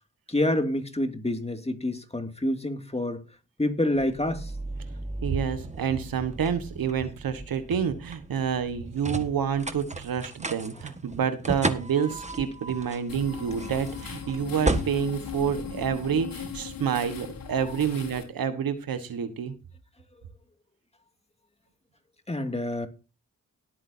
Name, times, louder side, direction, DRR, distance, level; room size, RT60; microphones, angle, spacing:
voice 1, 0.3-3.2 3.6-4.5 22.3-22.9, left 1 dB, 20° left, 2.4 m, -27 dB
sound 1, 3.9-16.3, right 2 dB, 20° right, 1.6 m, -35 dB
voice 2, 5.2-19.5, right 7 dB, 85° right, 1.5 m, -28 dB
sound 2, 13.1-18.2, left 6 dB, 75° left, 3.7 m, -38 dB
18.5 x 8.7 x 2.8 m
cardioid pair, 50°, 34 cm